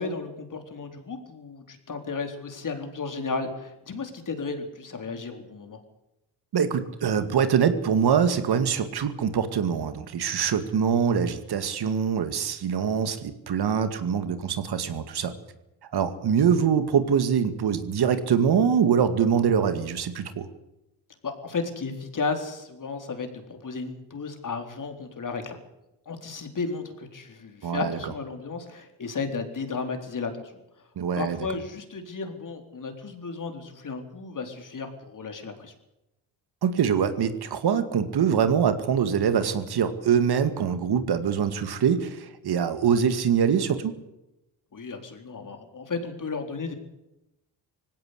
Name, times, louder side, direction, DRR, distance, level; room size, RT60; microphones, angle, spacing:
voice 1, 0.0-5.8 21.2-25.6 26.1-30.5 31.2-35.7 44.7-46.7, left 4 dB, 45° left, 5 dB, 4.1 m, -34 dB
voice 2, 6.5-15.3 15.9-20.5 27.6-28.0 31.0-31.4 36.6-43.9, right 7 dB, 65° right, 10 dB, 2.3 m, -24 dB
19.0 x 17.0 x 8.3 m, 0.90 s
supercardioid pair, 65°, 42 cm